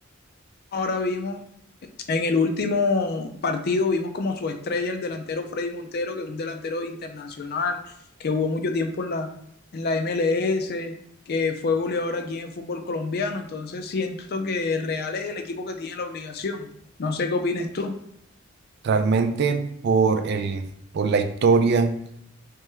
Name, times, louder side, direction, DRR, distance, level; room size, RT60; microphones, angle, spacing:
voice 1, 0.7-1.4 2.1-7.9 8.2-9.3 9.7-11.0 11.3-16.7 17.0-18.0, left 3 dB, 50° left, 6 dB, 0.4 m, -27 dB
voice 2, 18.8-20.7 20.9-22.1, right 4 dB, 55° right, 9 dB, 0.3 m, -21 dB
3.3 x 3.0 x 3.4 m, 0.70 s
head